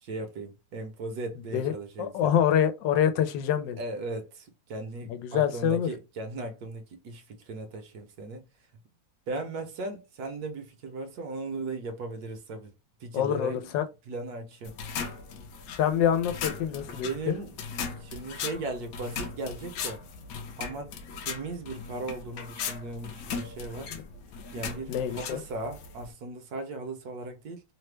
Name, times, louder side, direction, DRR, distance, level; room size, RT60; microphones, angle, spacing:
voice 1, 0.0-2.4 3.8-8.4 9.3-12.7 13.0-13.7 14.1-14.7 16.8-17.6 18.0-20.0 20.6-20.9 21.2-23.9 24.5-27.6, right 3 dB, 65° right, 1.1 m, -37 dB
voice 2, 2.0-3.8 5.1-5.9 13.1-13.8 15.8-17.1 23.9-24.0 24.9-25.4, left 9 dB, 90° left, 1.3 m, -26 dB
sound 1, 14.6-26.1, left 6 dB, 70° left, 0.9 m, -38 dB
3.2 x 2.1 x 3.1 m
omnidirectional pair, 1.9 m